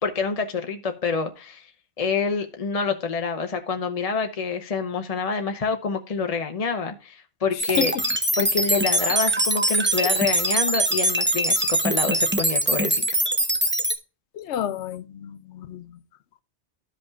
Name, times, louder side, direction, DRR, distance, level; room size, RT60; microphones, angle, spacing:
voice 1, 0.0-1.7 2.0-7.9 8.4-13.0, left 5 dB, 40° left, 0.7 m, -27 dB
sound 1, 7.6-14.0, right 1 dB, 15° right, 0.6 m, -23 dB
voice 2, 14.3-16.0, left 8 dB, 85° left, 0.9 m, -30 dB
13.5 x 5.3 x 2.3 m
omnidirectional pair, 1.1 m